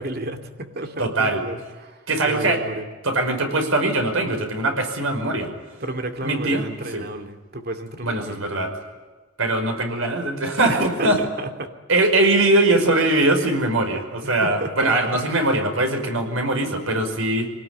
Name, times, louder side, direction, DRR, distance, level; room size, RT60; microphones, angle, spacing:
voice 1, 0.0-2.9 5.8-8.7 10.7-11.5 14.2-15.0 15.3-15.5, right 1 dB, 50° right, 6 dB, 2.4 m, -32 dB
voice 2, 1.0-1.4 2.1-2.6 3.0-5.5 6.2-6.7 6.9-7.0 8.0-8.7 9.4-11.2 11.9-17.5, right 2 dB, 85° right, 5 dB, 5.5 m, -21 dB
25.0 x 19.0 x 9.8 m, 1.3 s
head